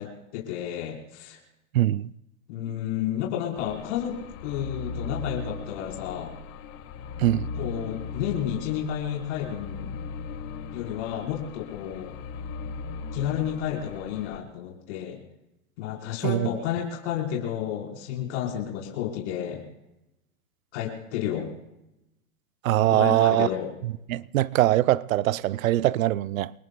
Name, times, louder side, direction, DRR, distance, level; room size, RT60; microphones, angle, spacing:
voice 1, 0.0-1.4 2.5-6.3 7.6-10.0 10.7-12.2 13.1-15.2 15.8-19.6 20.7-21.5 22.9-23.7, left 10 dB, 55° left, 4.5 m, -31 dB
voice 2, 1.7-2.1 7.2-7.5 16.2-16.5 22.6-23.5 24.1-26.5, right 14 dB, 75° right, 0.7 m, -22 dB
sound 1, 3.6-14.4, left 4 dB, 40° left, 1.6 m, -38 dB
29.5 x 18.5 x 2.3 m
hypercardioid pair, 135°, 41 cm